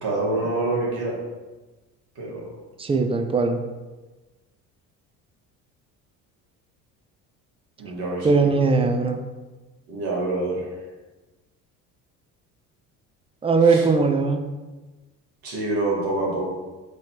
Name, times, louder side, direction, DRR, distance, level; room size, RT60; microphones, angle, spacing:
voice 1, 0.0-1.1 2.1-2.5 7.8-8.5 9.9-10.7 13.7-13.8 15.4-16.5, right 2 dB, 75° right, -4 dB, 1.5 m, -26 dB
voice 2, 2.8-3.6 8.2-9.2 13.4-14.4, right 4 dB, 15° right, 6 dB, 0.3 m, -20 dB
4.1 x 3.2 x 2.7 m, 1.2 s
supercardioid pair, 80°, 37 cm